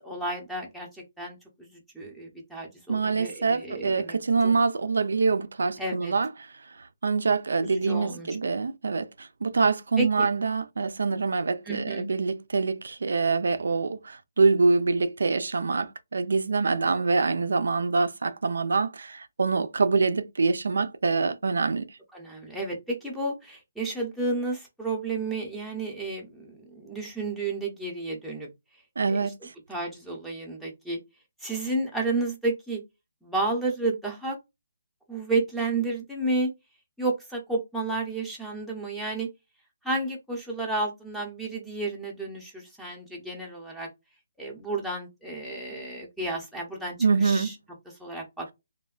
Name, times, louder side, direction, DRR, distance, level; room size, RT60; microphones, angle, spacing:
voice 1, 0.0-4.2 4.4-4.5 5.8-6.1 7.6-8.3 10.0-10.3 11.7-12.1 16.8-17.0 22.1-28.5 29.1-29.3 29.7-31.0 31.4-32.8 33.2-34.4 35.1-36.5 37.0-39.3 39.8-43.9 44.4-47.5 48.0-48.5, right 2 dB, ahead, 0.6 m, -31 dB
voice 2, 2.9-6.3 6.8-21.9 29.0-29.5 47.0-47.5, right 4 dB, 75° right, 0.3 m, -25 dB
3.2 x 2.1 x 2.3 m
hypercardioid pair, 175°, 0 cm